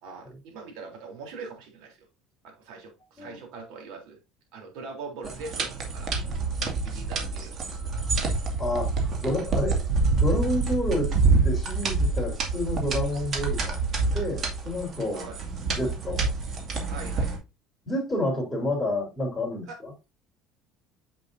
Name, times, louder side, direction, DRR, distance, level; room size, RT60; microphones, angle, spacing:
voice 1, 0.0-2.0 2.4-4.2 4.5-6.1 6.8-7.6 15.1-15.4 16.9-17.4 19.7-19.8, right 4 dB, 75° right, 3.5 m, -42 dB
sound 1, 5.2-17.4, right 3 dB, 45° right, 2.3 m, -27 dB
voice 2, 8.6-8.9 9.2-9.8 10.1-11.1 11.4-13.8 14.1-15.2 15.7-16.3 17.9-19.9, left 1 dB, 10° left, 3.7 m, -29 dB
7.4 x 7.0 x 2.7 m
supercardioid pair, 110°, 0 cm